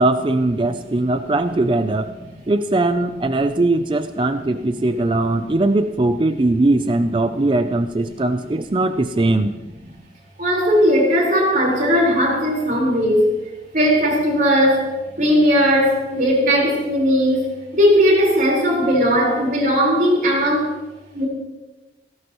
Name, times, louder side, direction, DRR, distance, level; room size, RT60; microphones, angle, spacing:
voice 1, 0.0-2.1 2.5-9.5, right 2 dB, 30° right, 9 dB, 0.5 m, -20 dB
voice 2, 10.4-13.3 13.7-14.9 15.2-20.7 21.1-21.3, equal, 45° right, -3 dB, 4.5 m, -17 dB
17.0 x 17.0 x 3.1 m, 1.1 s
head